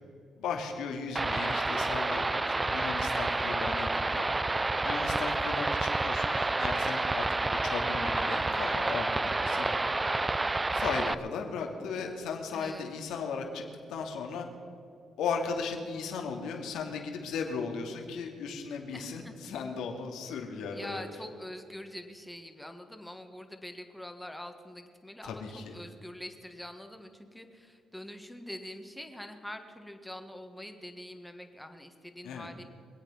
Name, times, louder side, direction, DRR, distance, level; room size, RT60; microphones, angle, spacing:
voice 1, 0.4-4.3 4.8-9.8 10.7-13.6 13.9-14.5 15.2-21.0 25.2-25.7 32.2-32.5, left 5 dB, 85° left, 2 dB, 2.4 m, -36 dB
sound 1, 1.1-11.1, right 2 dB, 20° right, 0.5 m, -29 dB
voice 2, 12.5-12.9 18.9-19.4 20.7-32.6, left 1 dB, 5° left, 5 dB, 1.7 m, -44 dB
25.5 x 8.7 x 5.7 m, 2.5 s
cardioid pair, 90°, 0 cm